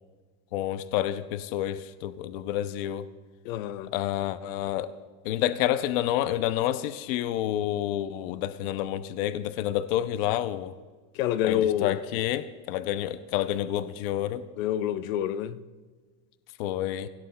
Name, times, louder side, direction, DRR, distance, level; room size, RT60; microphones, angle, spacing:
voice 1, 0.5-3.0 3.9-4.9 5.2-10.7 11.4-14.4 16.6-17.1, left 12 dB, 45° left, 0.5 m, -29 dB
voice 2, 3.4-3.9 11.1-12.0 14.6-15.6, left 11 dB, 75° left, 0.8 m, -27 dB
24.5 x 17.0 x 2.2 m
supercardioid pair, 175°, 40 cm